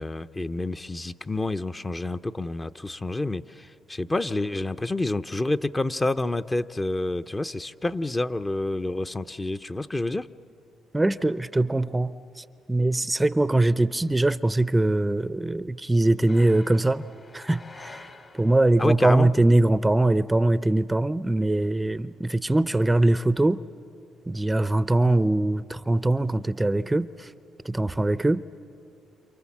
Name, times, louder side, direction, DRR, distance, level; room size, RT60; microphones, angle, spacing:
voice 1, 0.0-10.3 18.8-19.3, left 2 dB, 20° left, 10 dB, 0.7 m, -28 dB
voice 2, 10.9-17.0 17.3-23.6 24.3-27.3 27.6-28.4, right 2 dB, 15° right, 15 dB, 0.6 m, -22 dB
sound 1, 16.3-18.9, left 3 dB, 40° left, 2.1 m, -47 dB
28.5 x 28.0 x 7.3 m, 2.6 s
supercardioid pair, 65°, 0 cm